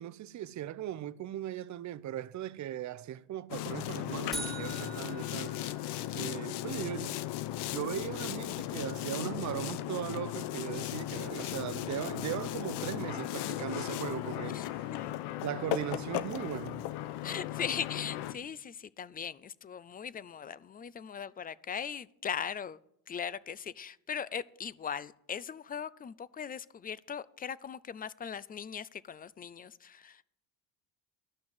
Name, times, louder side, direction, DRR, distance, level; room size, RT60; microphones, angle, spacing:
voice 1, 0.0-5.6 6.1-7.2 7.7-14.9 15.4-16.8, right 12 dB, 45° right, 0.6 m, -38 dB
Boat Water vehicle, 3.5-18.3, left 13 dB, 75° left, 0.9 m, -36 dB
sound 1, 4.3-6.4, right 2 dB, ahead, 2.5 m, -43 dB
voice 2, 17.2-22.8 23.1-30.3, left 7 dB, 25° left, 0.4 m, -39 dB
12.0 x 6.1 x 9.3 m
cardioid pair, 120°, 41 cm